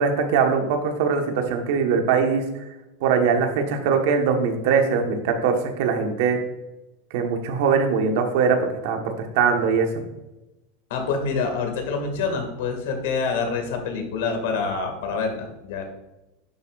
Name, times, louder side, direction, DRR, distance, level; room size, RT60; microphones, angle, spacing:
voice 1, 0.0-2.4 3.0-6.4 7.1-9.9, right 6 dB, 55° right, 4 dB, 1.3 m, -21 dB
voice 2, 10.9-15.9, left 4 dB, 65° left, 4 dB, 2.1 m, -26 dB
11.0 x 7.2 x 2.5 m, 0.99 s
supercardioid pair, 180°, 0 cm